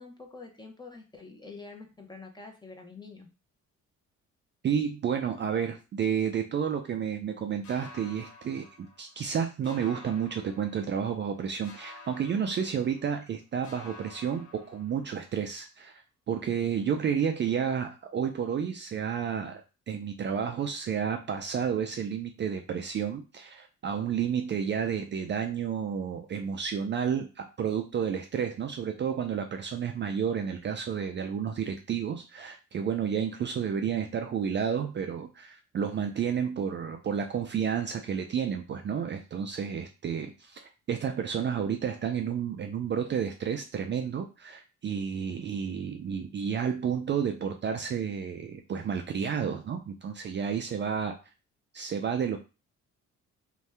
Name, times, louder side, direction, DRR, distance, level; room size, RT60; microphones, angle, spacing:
voice 1, 0.0-3.3, left 3 dB, 15° left, 2 dB, 0.7 m, -46 dB
voice 2, 4.6-16.0 16.3-19.6 19.9-40.6 40.9-51.2 51.7-52.4, right 7 dB, 40° right, 4 dB, 0.4 m, -31 dB
sound 1, 7.6-9.4 9.6-11.3 11.6-13.4 13.6-15.3, left 3 dB, 75° left, 0.8 m, -51 dB
2.7 x 2.3 x 3.3 m, 0.31 s
cardioid pair, 90°, 30 cm